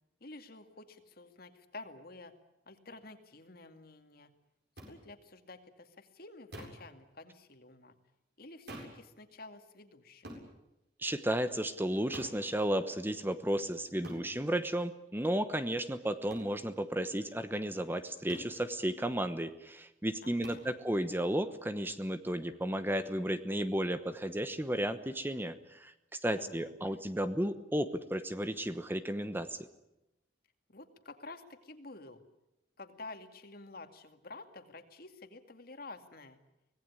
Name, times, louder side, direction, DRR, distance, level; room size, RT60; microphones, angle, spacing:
voice 1, 0.2-2.4 2.7-4.3 4.9-8.0 8.4-10.4 20.2-20.8 26.4-27.0 30.7-32.2 32.8-36.4, left 2 dB, 55° left, 7 dB, 2.3 m, -50 dB
sound 1, 4.8-4.9 6.5-6.9 8.7-9.0 10.2-10.5 12.1-12.4 14.0-14.3 16.3-16.5 18.3-18.6 20.4-20.7, equal, 65° right, 7.5 m, -46 dB
voice 2, 11.0-29.6, right 1 dB, 10° right, 11 dB, 1.0 m, -33 dB
24.5 x 18.5 x 9.9 m, 0.90 s
head